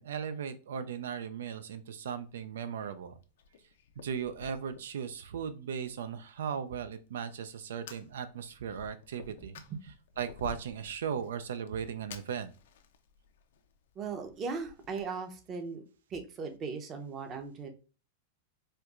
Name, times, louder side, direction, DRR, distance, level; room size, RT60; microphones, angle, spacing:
voice 1, 0.0-3.1 4.0-9.6 10.2-12.5, right 7 dB, 85° right, 11 dB, 0.3 m, -37 dB
Fire, 2.1-15.0, left 6 dB, 75° left, 0.5 m, -54 dB
voice 2, 14.0-15.8 16.1-17.7, right 5 dB, 25° right, 6 dB, 0.6 m, -38 dB
4.3 x 2.3 x 2.4 m, 0.36 s
supercardioid pair, 140°, 0 cm